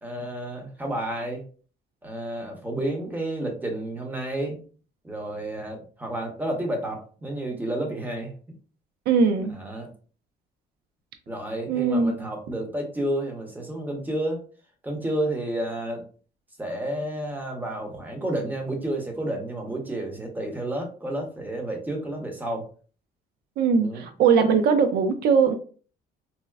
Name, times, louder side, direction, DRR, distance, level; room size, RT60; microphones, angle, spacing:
voice 1, 0.0-1.4 2.0-4.6 5.0-8.3 9.5-9.9 11.3-14.4 14.8-16.0 16.6-22.7 23.7-24.0, right 1 dB, 10° right, 2 dB, 0.8 m, -31 dB
voice 2, 9.1-9.6 11.7-12.1 23.6-25.5, right 5 dB, 70° right, 8 dB, 0.4 m, -20 dB
4.2 x 2.0 x 2.3 m, 0.39 s
cardioid pair, 110°, 17 cm